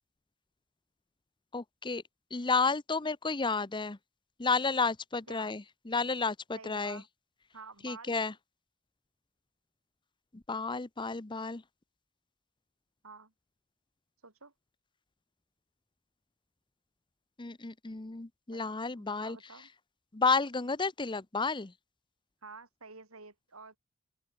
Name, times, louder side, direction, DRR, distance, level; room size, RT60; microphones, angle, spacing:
voice 1, 1.5-2.0 2.3-4.0 4.4-7.0 7.8-8.3 10.3-11.6 17.4-19.4 20.1-21.7, left 4 dB, 20° left, 0.8 m, -31 dB
voice 2, 6.5-7.1 7.5-8.2 13.0-13.3 14.2-14.5 18.5-18.6 18.9-19.7 22.4-23.8, right 4 dB, 85° right, 5.0 m, -50 dB
head